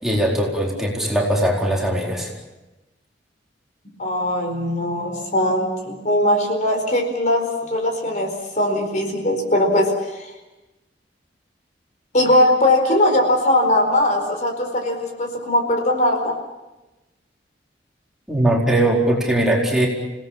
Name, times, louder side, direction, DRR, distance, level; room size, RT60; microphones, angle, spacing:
voice 1, 0.0-2.3 18.3-19.9, right 1 dB, 5° right, -3 dB, 4.5 m, -20 dB
voice 2, 4.0-10.3 12.1-16.3, left 1 dB, 45° left, 4 dB, 4.5 m, -20 dB
29.5 x 18.5 x 7.4 m, 1.0 s
head